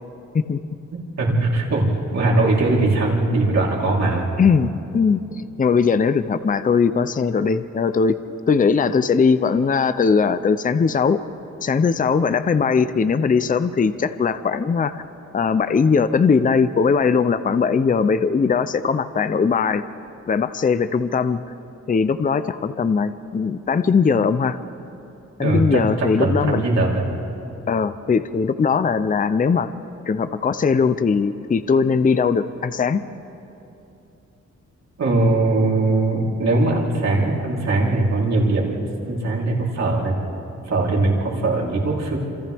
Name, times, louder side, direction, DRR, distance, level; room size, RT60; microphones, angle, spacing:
voice 1, 1.2-4.3 25.4-27.1 35.0-40.2 40.7-42.2, right 2 dB, 65° right, -4 dB, 3.7 m, -20 dB
voice 2, 4.4-5.2 5.6-8.2 8.5-11.2 11.6-15.0 15.3-19.9 20.3-21.4 21.9-24.6 25.4-26.6 27.7-29.7 30.1-33.0, left 5 dB, 30° left, 12 dB, 0.6 m, -19 dB
28.5 x 26.5 x 3.5 m, 2.8 s
wide cardioid pair, 125°, 30 cm